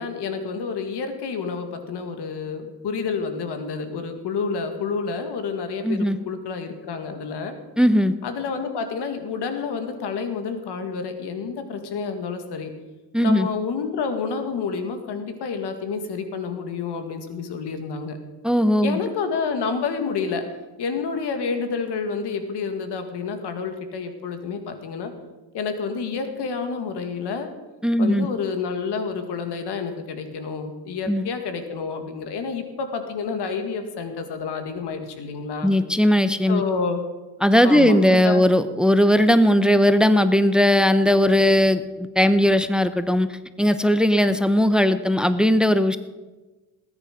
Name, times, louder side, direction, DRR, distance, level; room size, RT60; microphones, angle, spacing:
voice 1, 0.0-7.5 8.2-12.7 13.2-18.2 18.8-20.5 20.8-25.1 25.5-27.5 28.0-35.7 36.5-37.0 37.6-38.5, left 5 dB, 80° left, 7 dB, 2.0 m, -29 dB
voice 2, 5.8-6.2 7.8-8.1 13.1-13.5 18.4-19.0 27.8-28.3 31.1-31.2 35.6-36.6 37.4-46.0, equal, ahead, 11 dB, 1.0 m, -18 dB
19.5 x 9.7 x 5.3 m, 1.2 s
supercardioid pair, 60°, 40 cm